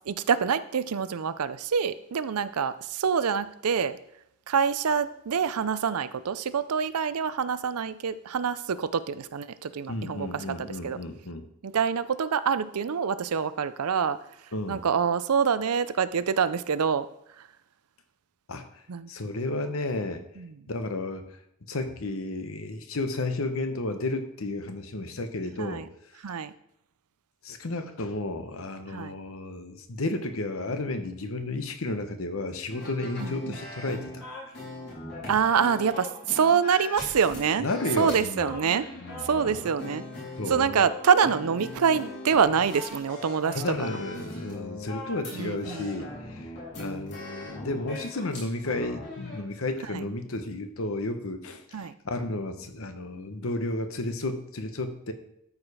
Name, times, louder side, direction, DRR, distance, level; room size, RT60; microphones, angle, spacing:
voice 1, 0.1-4.0 4.5-11.0 11.6-14.2 14.7-17.1 18.9-19.1 20.4-20.5 25.6-25.9 26.2-26.5 28.9-29.1 33.2-33.6 35.3-37.7 38.0-38.9 39.2-40.0 40.5-44.0 45.3-45.9 49.9-50.0 51.7-51.9, right 6 dB, 90° right, 14 dB, 0.5 m, -26 dB
voice 2, 9.9-11.5 14.5-14.8 18.5-18.7 19.1-20.2 20.7-21.2 21.7-25.9 27.4-34.1 37.6-38.6 39.0-39.6 40.4-40.7 43.5-46.5 46.8-55.1, left 2 dB, 70° left, 8 dB, 1.0 m, -32 dB
sound 1, 32.7-49.4, left 2 dB, 50° left, 4.4 m, -40 dB
12.5 x 4.9 x 4.9 m, 0.76 s
head